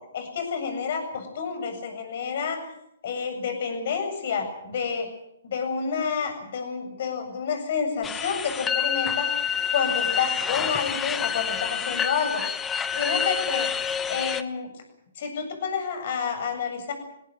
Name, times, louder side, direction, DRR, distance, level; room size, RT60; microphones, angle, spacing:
voice 1, 0.1-2.6 3.0-5.1 5.4-9.3 9.7-12.4 12.9-13.7 14.1-14.7 15.2-16.9, left 6 dB, 55° left, 6 dB, 7.9 m, -29 dB
sound 1, 8.0-14.4, left 7 dB, 15° left, 1.1 m, -28 dB
21.5 x 17.5 x 9.2 m, 0.79 s
hypercardioid pair, 145°, 0 cm